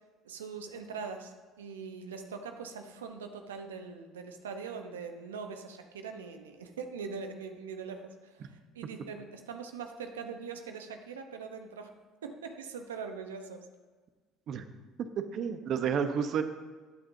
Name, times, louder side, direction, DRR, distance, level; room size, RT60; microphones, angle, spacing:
voice 1, 0.2-11.9 12.2-13.6, right 5 dB, 90° right, 6 dB, 0.8 m, -42 dB
voice 2, 15.3-16.4, right 7 dB, 55° right, 9 dB, 0.9 m, -30 dB
14.0 x 8.8 x 2.7 m, 1.4 s
hypercardioid pair, 65°, 0 cm